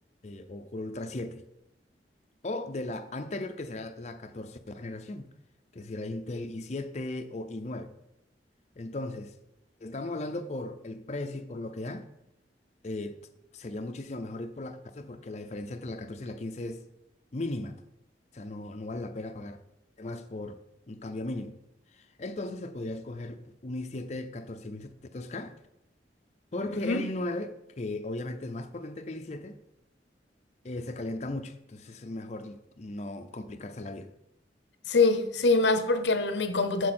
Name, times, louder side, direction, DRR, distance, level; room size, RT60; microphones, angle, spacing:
voice 1, 0.2-1.4 2.4-5.3 5.7-7.9 8.8-9.3 9.8-12.1 12.8-13.2 13.5-16.8 17.3-17.8 18.3-19.6 20.0-20.6 20.9-21.6 21.9-25.6 26.5-29.6 30.6-34.1, left 2 dB, 40° left, 0.6 m, -37 dB
voice 2, 34.9-36.9, left 3 dB, 85° left, 0.8 m, -24 dB
14.0 x 4.7 x 4.3 m
head